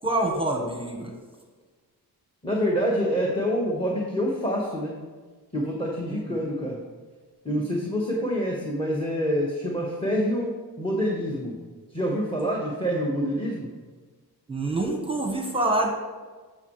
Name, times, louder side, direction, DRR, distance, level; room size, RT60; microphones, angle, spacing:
voice 1, 0.0-1.1 6.1-6.4 14.5-15.9, right 2 dB, 15° right, 2 dB, 1.0 m, -26 dB
voice 2, 2.4-5.0 5.5-6.8 7.4-10.5 10.8-11.6 11.9-13.7, equal, 15° left, -2 dB, 1.2 m, -26 dB
12.5 x 6.4 x 3.1 m, 1.4 s
wide cardioid pair, 95°, 39 cm